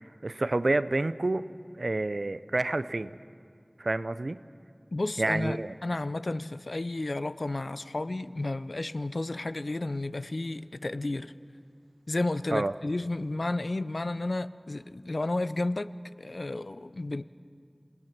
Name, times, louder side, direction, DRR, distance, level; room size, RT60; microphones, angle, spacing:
voice 1, 0.2-1.5 1.8-3.2 3.8-4.4 5.2-5.7 12.5-12.7, right 2 dB, 90° right, 14 dB, 0.5 m, -28 dB
voice 2, 4.9-11.3 12.1-15.9 16.2-17.2, left 2 dB, 85° left, 14 dB, 0.5 m, -32 dB
27.5 x 19.0 x 6.0 m, 2.3 s
wide cardioid pair, 45°, 0 cm